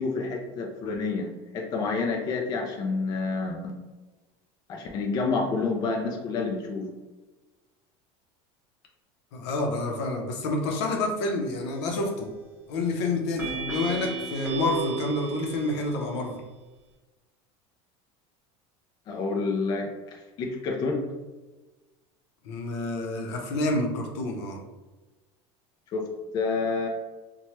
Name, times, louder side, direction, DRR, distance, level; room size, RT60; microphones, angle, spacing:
voice 1, 0.0-3.8 4.7-6.9 19.1-21.0 25.9-26.1 26.3-26.9, left 4 dB, 30° left, 1 dB, 0.3 m, -29 dB
voice 2, 9.3-12.3 12.7-16.4 22.4-24.6, left 2 dB, 75° left, 2 dB, 0.6 m, -28 dB
sound 1, 11.7-12.2 13.4-16.1, right 4 dB, 15° right, 0.8 m, -35 dB
2.8 x 2.2 x 3.0 m, 1.2 s
supercardioid pair, 155°, 14 cm